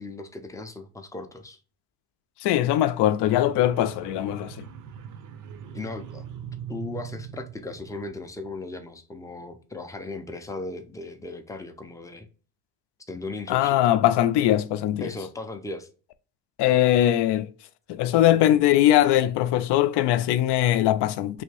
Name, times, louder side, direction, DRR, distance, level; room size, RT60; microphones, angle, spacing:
voice 1, 0.0-1.6 5.7-6.2 6.7-12.3 13.1-13.8 15.0-15.9, left 2 dB, 10° left, 0.4 m, -37 dB
voice 2, 2.4-4.7 13.5-15.1 16.6-17.5 17.9-21.4, left 13 dB, 80° left, 0.5 m, -21 dB
sound 1, 3.2-8.5, right 8 dB, 50° right, 0.5 m, -41 dB
3.3 x 2.6 x 3.2 m
cardioid pair, 140°, 40 cm